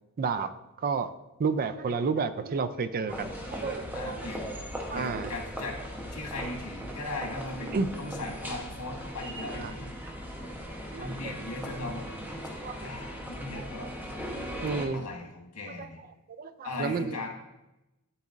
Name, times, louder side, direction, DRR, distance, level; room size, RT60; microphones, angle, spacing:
voice 1, 0.2-0.5 0.8-1.1 1.4-4.3 4.9-5.3 7.7-7.9 9.5-9.7 10.9-11.3 12.6-12.9 13.6-13.9 14.4-15.0 15.8-15.9 16.3-17.2, right 5 dB, 40° right, 12 dB, 0.3 m, -31 dB
sound 1, 3.1-14.9, equal, 10° right, 0.8 m, -38 dB
voice 2, 3.9-4.6 4.9-5.8 6.1-10.0 11.0-12.1 12.8-13.9 14.9-16.0 16.6-17.3, left 2 dB, 85° left, 0 dB, 1.7 m, -38 dB
11.5 x 4.0 x 2.5 m, 0.97 s
head